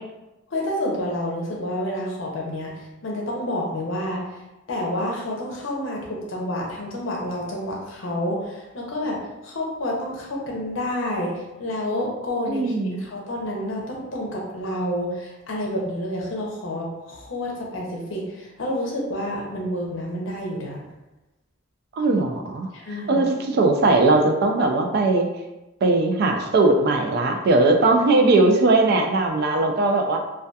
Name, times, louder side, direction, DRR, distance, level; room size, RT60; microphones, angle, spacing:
voice 1, 0.5-4.4 4.7-9.2 9.4-20.8 22.7-23.2, left 1 dB, 65° left, -2 dB, 0.6 m, -29 dB
voice 2, 12.5-13.1 22.0-22.7 23.1-25.3 25.8-30.2, right 2 dB, 50° right, 3 dB, 0.3 m, -19 dB
2.6 x 2.2 x 2.2 m, 1.0 s
head